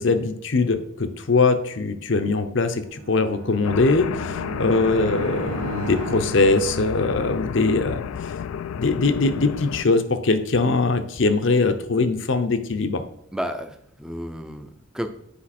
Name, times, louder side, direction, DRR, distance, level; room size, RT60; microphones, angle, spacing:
voice 1, 0.0-8.3 8.8-13.1, left 3 dB, 60° left, 9 dB, 0.7 m, -22 dB
Bowed string instrument, 2.8-7.5, right 5 dB, 85° right, 0.4 m, -37 dB
sound 1, 3.6-9.8, left 8 dB, 85° left, 0.3 m, -31 dB
voice 2, 13.3-15.1, equal, 5° right, 7 dB, 0.5 m, -32 dB
8.5 x 5.2 x 4.2 m, 0.72 s
head